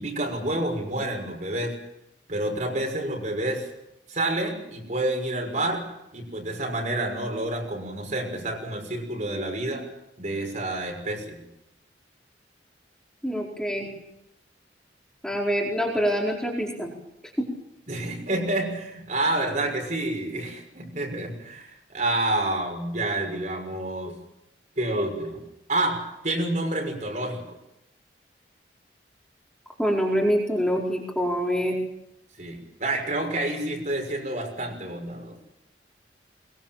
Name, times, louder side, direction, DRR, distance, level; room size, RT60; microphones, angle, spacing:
voice 1, 0.0-1.7 2.3-3.6 4.1-5.9 6.1-9.8 10.2-11.4 17.9-24.1 24.8-25.4 25.7-27.4 32.4-35.3, right 1 dB, 40° right, 3 dB, 6.2 m, -28 dB
voice 2, 13.2-13.9 15.2-16.9 17.4-17.5 29.8-31.8, equal, 5° left, -2 dB, 4.5 m, -25 dB
23.0 x 22.5 x 7.6 m, 0.84 s
head